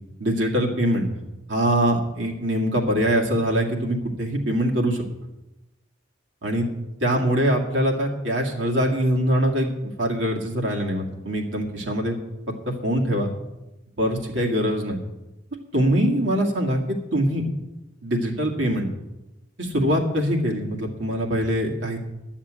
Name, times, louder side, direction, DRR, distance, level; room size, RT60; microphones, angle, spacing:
voice 1, 0.2-1.1 1.5-5.0 6.4-6.7 7.0-12.2 12.7-13.3 14.0-15.0 15.7-17.4 18.0-18.9 19.6-22.0, equal, 75° right, -1 dB, 2.0 m, -23 dB
11.5 x 7.3 x 8.8 m, 0.99 s
head